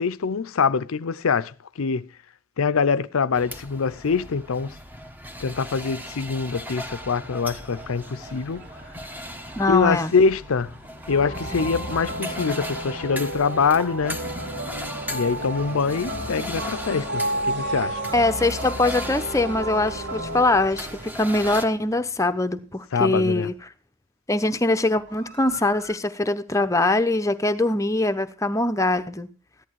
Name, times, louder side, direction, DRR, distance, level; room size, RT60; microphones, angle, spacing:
voice 1, 0.0-2.1 2.6-4.7 5.4-8.6 9.6-10.7 11.1-14.2 15.1-18.0 22.9-23.5, left 5 dB, 85° left, 0.6 m, -24 dB
sound 1, 3.3-21.6, equal, 10° right, 1.1 m, -37 dB
sound 2, 7.2-22.8 24.9-26.0, right 3 dB, 50° right, 2.4 m, -45 dB
voice 2, 9.6-10.1 18.1-23.6 24.3-29.3, left 2 dB, 15° left, 0.8 m, -22 dB
sound 3, 11.1-20.4, right 1 dB, 75° right, 3.2 m, -32 dB
14.5 x 11.0 x 4.7 m
head